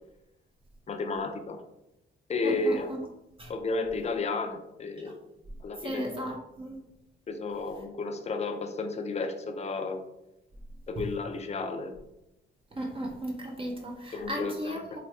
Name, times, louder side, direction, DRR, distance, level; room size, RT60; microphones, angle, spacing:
voice 1, 0.9-1.6 2.3-2.9 3.5-5.1 5.6-6.3 7.3-10.0 10.9-11.9 14.1-14.8, left 3 dB, 35° left, 6 dB, 0.5 m, -32 dB
voice 2, 2.4-3.0 3.4-3.5 5.8-6.8 11.0-11.1 12.7-15.0, equal, 25° right, 0 dB, 0.7 m, -36 dB
3.2 x 2.3 x 4.2 m, 0.89 s
cardioid pair, 90°, 20 cm